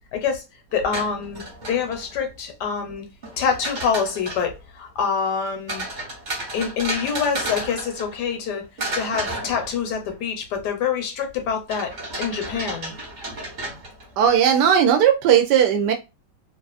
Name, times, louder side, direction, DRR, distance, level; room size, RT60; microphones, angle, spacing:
voice 1, 0.1-0.4 0.7-1.4 1.7-3.0 3.4-5.8 6.5-8.6 8.9-11.9 12.2-12.9, left 6 dB, 75° left, 1.2 m, -25 dB
sound 1, 0.7-2.2 3.2-4.5 5.7-8.5 8.8-10.1 11.7-14.2, right 2 dB, 40° right, 0.7 m, -33 dB
voice 2, 14.2-15.9, right 9 dB, 75° right, 1.2 m, -17 dB
3.0 x 2.4 x 2.4 m
omnidirectional pair, 1.9 m